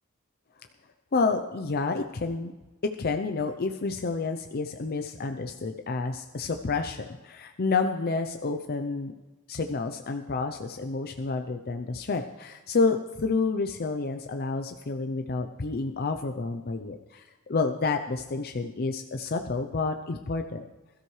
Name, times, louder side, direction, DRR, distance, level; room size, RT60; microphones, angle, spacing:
voice 1, 1.1-2.5 3.0-9.1 9.5-17.2 17.5-20.6, left 4 dB, 45° left, 5 dB, 0.6 m, -29 dB
21.0 x 13.0 x 3.2 m, 1.2 s
head